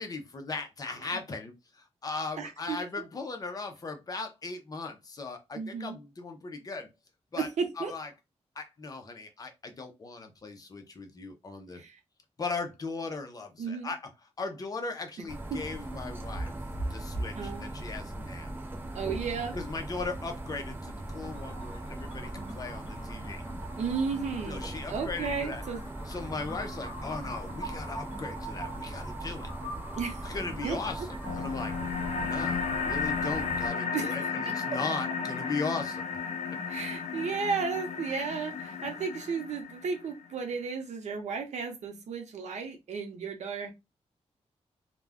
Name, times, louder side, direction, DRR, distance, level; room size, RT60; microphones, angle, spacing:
voice 1, 0.0-6.9 7.3-7.5 7.8-8.1 8.6-11.8 12.4-14.0 14.4-16.5 16.9-18.5 19.5-23.4 24.5-25.6 26.1-29.5 30.2-31.7 32.2-36.1, left 3 dB, 35° left, 0.6 m, -38 dB
voice 2, 2.4-3.0 5.5-6.0 7.4-7.9 11.7-12.0 13.6-13.9 15.5-15.6 17.4-17.7 18.9-19.6 23.8-24.6 24.9-25.8 30.0-30.2 30.6-30.8 33.9-34.1 34.5-34.6 36.7-43.7, right 5 dB, 90° right, 0.7 m, -34 dB
sound 1, 15.3-33.7, right 1 dB, 20° right, 0.4 m, -39 dB
sound 2, 21.2-35.5, right 1 dB, 50° left, 1.2 m, -45 dB
sound 3, 31.2-40.2, left 6 dB, 85° left, 0.5 m, -34 dB
2.4 x 2.1 x 3.4 m
wide cardioid pair, 165°, 11 cm